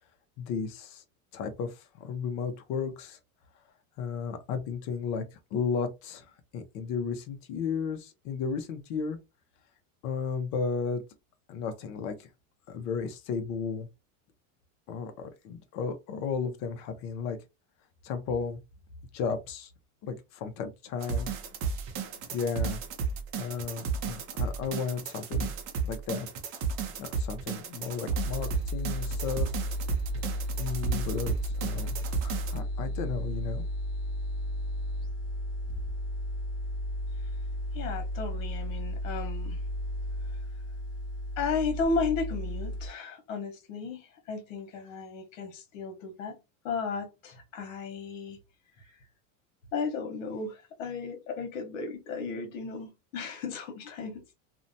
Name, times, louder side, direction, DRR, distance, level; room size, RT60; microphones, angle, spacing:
voice 1, 0.4-1.0 1.3-3.2 4.0-6.2 6.5-9.2 10.0-11.0 11.5-12.3 12.7-13.9 14.9-17.4 18.0-18.6 19.1-19.7 20.0-21.3 22.3-22.8 23.4-25.5 25.8-26.3 27.0-29.5 30.6-33.6, left 5 dB, 45° left, 0.7 m, -34 dB
sound 1, 21.0-32.6, right 5 dB, 35° right, 0.5 m, -33 dB
sound 2, 28.1-42.9, equal, 10° left, 0.8 m, -34 dB
voice 2, 37.7-39.6 41.4-46.4 46.6-48.4 49.7-54.2, left 4 dB, 75° left, 1.1 m, -34 dB
2.7 x 2.1 x 2.6 m
supercardioid pair, 150°, 39 cm